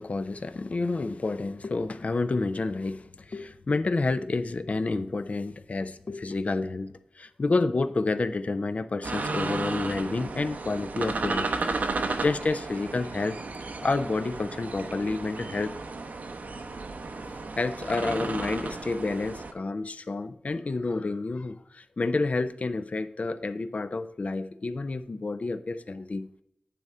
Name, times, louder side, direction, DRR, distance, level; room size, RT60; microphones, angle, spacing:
voice 1, 0.0-11.5 12.2-13.4 13.8-15.7 16.5-16.6 17.2-26.3, left 3 dB, 60° left, 12 dB, 0.6 m, -29 dB
sound 1, 9.0-19.5, right 3 dB, 85° right, 0.8 m, -34 dB
9.3 x 3.6 x 5.4 m, 0.76 s
wide cardioid pair, 55°, 3 cm